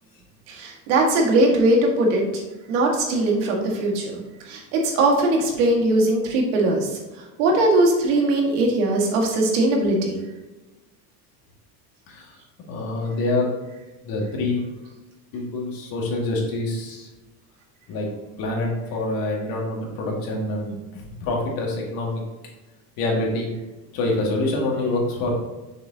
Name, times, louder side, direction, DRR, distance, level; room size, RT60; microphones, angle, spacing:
voice 1, 0.5-2.2 2.7-4.0 4.5-6.9 7.4-10.1, right 2 dB, 75° right, 0 dB, 1.9 m, -20 dB
voice 2, 12.7-13.5 14.0-14.6 15.3-17.1 17.9-18.1 18.4-22.2 23.0-23.5 23.9-25.5, left 2 dB, 55° left, -2 dB, 2.1 m, -26 dB
6.6 x 6.4 x 2.8 m, 1.1 s
supercardioid pair, 140°, 44 cm